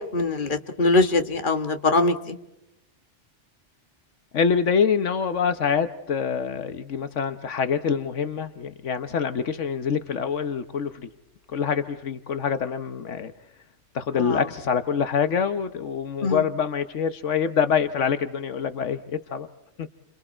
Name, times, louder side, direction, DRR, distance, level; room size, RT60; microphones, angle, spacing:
voice 1, 0.1-2.3 14.2-14.4 16.2-16.4, left 3 dB, 45° left, 7 dB, 1.6 m, -22 dB
voice 2, 4.3-11.1 11.5-13.3 13.9-19.5 19.8-19.9, left 6 dB, 80° left, 10 dB, 1.3 m, -25 dB
30.0 x 26.0 x 4.4 m, 0.88 s
omnidirectional pair, 1.2 m